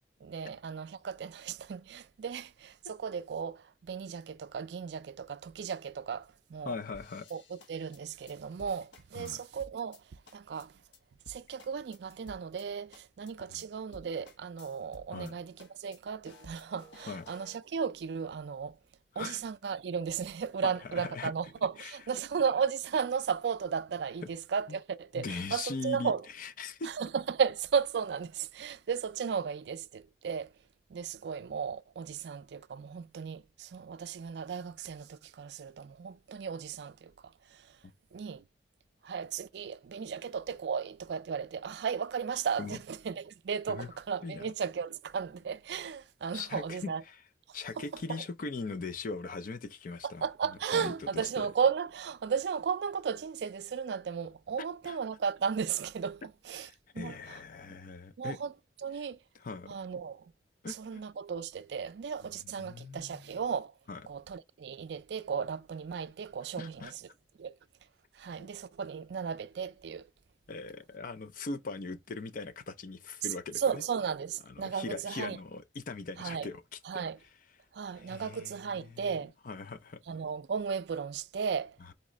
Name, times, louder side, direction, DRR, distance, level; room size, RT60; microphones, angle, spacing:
voice 1, 0.2-6.7 7.3-10.8 11.3-18.8 19.2-26.2 26.8-30.5 30.9-37.8 38.1-38.4 39.0-47.0 47.5-48.2 50.0-56.7 56.9-57.4 58.2-58.5 58.8-59.2 59.7-60.3 60.7-63.8 64.1-67.1 67.4-67.6 68.1-70.1 73.6-75.4 76.2-76.5 76.8-77.2 77.7-79.3 80.1-81.8, right 6 dB, 70° right, 0.4 m, -35 dB
voice 2, 6.7-7.3 9.1-9.4 13.5-13.6 15.1-15.3 17.1-17.2 19.1-19.4 20.6-21.3 21.8-21.9 24.7-24.8 25.1-26.1 26.4-26.9 42.6-42.8 43.7-43.9 44.2-44.5 46.3-47.2 47.5-50.2 50.7-50.9 51.4-51.5 54.8-55.0 56.6-58.4 59.4-59.8 60.6-61.0 62.6-63.4 63.9-64.0 66.6-66.9 70.5-73.8 74.6-76.8 78.0-79.1 79.4-80.0, left 4 dB, 50° left, 0.4 m, -40 dB
sound 1, 6.9-10.0 10.3-10.6 10.9-11.0 11.3-12.6 12.9-13.3 13.6-13.7 13.9-15.3 15.6-17.6, left 1 dB, 80° left, 1.0 m, -55 dB
4.1 x 3.1 x 3.7 m
head